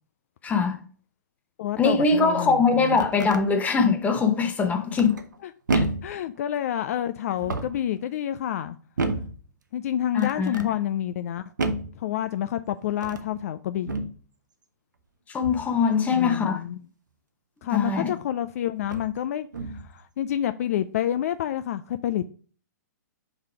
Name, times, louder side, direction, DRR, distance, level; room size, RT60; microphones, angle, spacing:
voice 1, 0.4-0.8 1.8-5.1 5.7-5.8 10.1-10.7 15.3-16.6 17.7-18.1, left 5 dB, 15° left, 1.0 m, -22 dB
voice 2, 1.6-3.0 5.4-5.5 6.0-8.8 9.7-11.5 12.0-14.1 16.1-16.9 17.6-22.3, left 11 dB, 55° left, 0.4 m, -29 dB
sound 1, 2.7-3.5 4.9-5.4 5.7-6.2 7.3-7.9 9.0-9.4 10.2-10.7 11.6-12.0 12.9-13.3 13.9-14.2 15.4-15.7 17.8-17.9 18.8-19.1 19.5-19.9, right 3 dB, 80° right, 0.8 m, -30 dB
5.4 x 4.0 x 4.8 m
hypercardioid pair, 120°, 10 cm